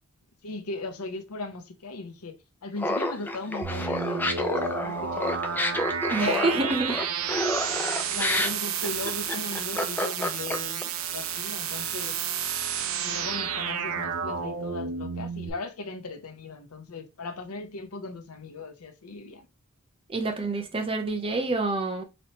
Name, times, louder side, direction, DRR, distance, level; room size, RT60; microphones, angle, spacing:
voice 1, 0.4-2.4 2.6-5.6 6.2-6.8 8.1-12.2 12.9-19.5, left 3 dB, 80° left, 0.7 m, -37 dB
Laughter, 2.8-10.8, left 1 dB, 10° left, 0.3 m, -29 dB
sound 1, 3.6-15.5, right 7 dB, 70° right, 0.6 m, -31 dB
voice 2, 6.1-6.9 20.1-22.0, right 3 dB, 25° right, 0.7 m, -27 dB
4.2 x 3.2 x 2.8 m
head